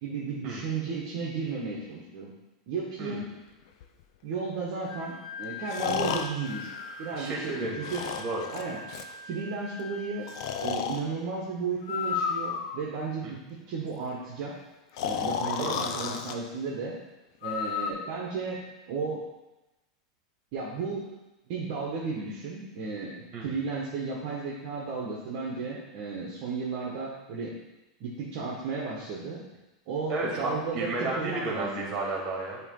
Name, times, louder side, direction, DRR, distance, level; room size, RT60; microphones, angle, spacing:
voice 1, 0.0-2.3 2.7-3.3 4.2-6.7 7.0-8.0 8.5-8.8 9.2-10.3 10.6-14.5 15.0-16.9 17.4-18.6 18.9-19.2 20.5-21.1 21.5-23.1 23.4-27.5 28.0-29.4 29.9-31.8, right 4 dB, 55° right, -4 dB, 1.3 m, -34 dB
Breathing, 3.8-3.9 5.7-7.4 7.8-9.1 10.3-11.0 11.8-13.0 15.0-16.3 17.4-17.9, left 7 dB, 65° left, 0.5 m, -32 dB
Wind instrument woodwind instrument, 4.9-10.7, left 3 dB, 5° left, 2.3 m, -43 dB
voice 2, 7.2-8.5 13.2-13.3 15.5-16.1 23.3-23.5 30.1-32.6, right 2 dB, 40° right, -2 dB, 2.2 m, -33 dB
8.2 x 3.2 x 3.9 m, 1.0 s
supercardioid pair, 135°, 3 cm